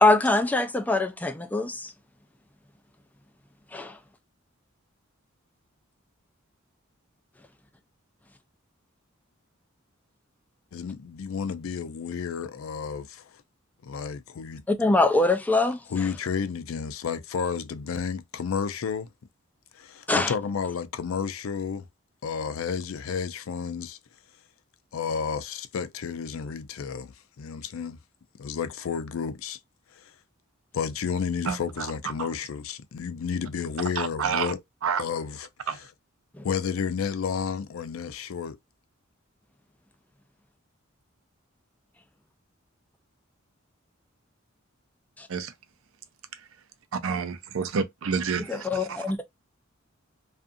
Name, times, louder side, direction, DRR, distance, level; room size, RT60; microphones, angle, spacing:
voice 1, 0.0-1.9 3.7-4.0 14.8-15.8 20.1-20.3 36.4-36.5 45.2-45.3 48.5-49.3, left 2 dB, 10° left, 0.3 m, -23 dB
voice 2, 10.7-13.4 13.8-14.6 15.9-19.1 19.7-21.9 22.2-24.0 24.9-28.0 28.4-29.6 29.9-30.1 30.7-34.6 35.0-35.5 36.4-38.6, left 6 dB, 90° left, 0.4 m, -31 dB
voice 3, 31.5-31.9 32.2-32.3 34.0-34.5 34.8-35.1 35.7-35.8 45.3-45.5 47.0-49.0, right 6 dB, 85° right, 0.5 m, -29 dB
2.5 x 2.4 x 2.5 m
head